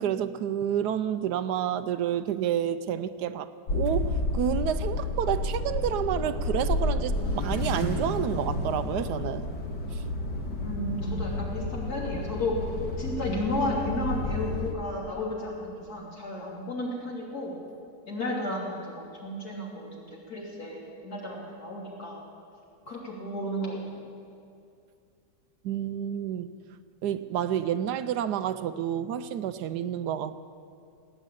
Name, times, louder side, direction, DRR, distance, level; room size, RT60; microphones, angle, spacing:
voice 1, 0.0-9.4 25.6-26.5 27.0-30.4, right 10 dB, 75° right, 12 dB, 1.1 m, -29 dB
sound 1, 3.7-14.7, left 2 dB, 80° left, 2.1 m, -30 dB
voice 2, 10.6-12.5 13.0-17.6 18.1-22.2 22.9-24.0, left 1 dB, 60° left, -4 dB, 3.7 m, -33 dB
18.0 x 9.3 x 8.4 m, 2.4 s
omnidirectional pair, 1.8 m